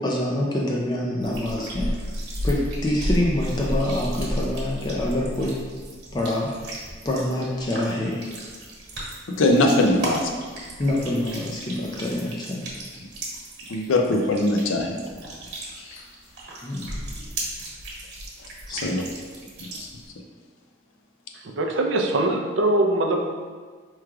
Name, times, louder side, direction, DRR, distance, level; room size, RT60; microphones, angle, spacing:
voice 1, 0.0-2.0 2.4-5.6 6.1-8.3 10.8-12.6 16.6-17.0 18.7-19.0, left 1 dB, 20° left, -3 dB, 0.4 m, -26 dB
sound 1, 1.2-20.1, equal, 55° right, 1.2 m, -33 dB
voice 2, 9.3-10.3 13.7-15.0 15.8-16.0 18.7-19.0 19.6-19.9, left 2 dB, 90° left, 2 dB, 0.5 m, -22 dB
voice 3, 21.4-23.3, right 1 dB, 70° right, 2 dB, 0.5 m, -22 dB
4.7 x 3.1 x 2.3 m, 1.5 s
head